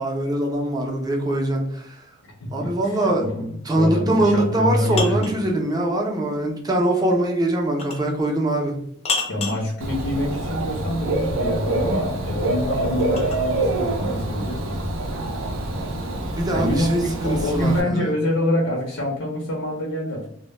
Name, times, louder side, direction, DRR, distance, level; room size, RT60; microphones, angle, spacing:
voice 1, 0.0-2.1 2.5-8.8 16.4-18.1, right 1 dB, 20° right, 0 dB, 0.5 m, -23 dB
voice 2, 2.4-3.5 3.7-5.4 9.3-14.6 16.5-17.0 17.2-20.3, left 1 dB, 85° left, -2 dB, 0.6 m, -25 dB
sound 1, 4.4-5.4 7.8-8.1 9.1-9.7 11.9-13.5, left 4 dB, 35° left, 0.4 m, -29 dB
Dog / Bird, 9.8-17.8, right 2 dB, 70° right, 0.5 m, -26 dB
2.1 x 2.0 x 3.1 m, 0.70 s
head